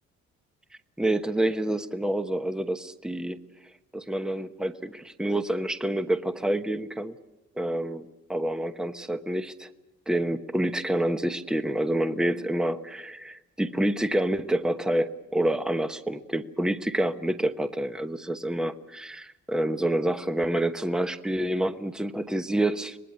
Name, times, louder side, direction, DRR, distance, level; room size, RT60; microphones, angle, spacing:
voice 1, 1.0-3.4 3.9-7.1 7.6-9.7 10.1-23.0, right 1 dB, ahead, 9 dB, 1.0 m, -28 dB
24.5 x 19.5 x 8.4 m, 0.97 s
cardioid pair, 90°, 30 cm